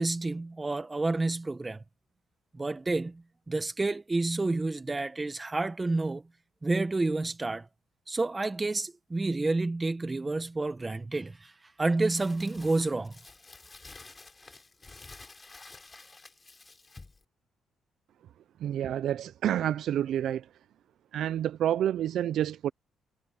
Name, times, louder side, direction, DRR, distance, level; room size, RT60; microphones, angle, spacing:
voice 1, 0.0-1.8 2.5-6.2 6.6-7.6 8.1-11.5 11.8-13.1, right 2 dB, 20° right, 1.6 m, -29 dB
Crumpling crinkling, 12.0-17.2, left 3 dB, 25° left, 6.8 m, -50 dB
voice 2, 18.6-20.5 21.1-22.7, right 11 dB, 75° right, 0.4 m, -28 dB
cardioid pair, 90°, 0 cm